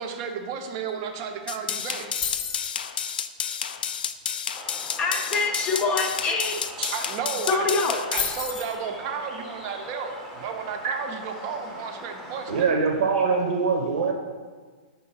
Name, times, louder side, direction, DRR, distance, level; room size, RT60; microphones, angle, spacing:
voice 1, 0.0-2.1 6.9-7.7 8.1-12.8, right 6 dB, 35° right, 5 dB, 0.6 m, -33 dB
sound 1, 1.5-8.3, left 8 dB, 90° left, 0.4 m, -31 dB
sound 2, 2.2-2.8 6.8-6.9 7.1-7.4 8.1-8.8, left 7 dB, 55° left, 0.7 m, -31 dB
sound 3, 4.5-12.7, right 1 dB, ahead, 0.9 m, -42 dB
voice 2, 5.0-6.5 7.5-8.0, left 4 dB, 15° left, 3 dB, 0.5 m, -25 dB
voice 3, 12.5-14.1, right 5 dB, 65° right, 3 dB, 0.8 m, -23 dB
5.6 x 3.8 x 5.4 m, 1.5 s
hypercardioid pair, 165°, 5 cm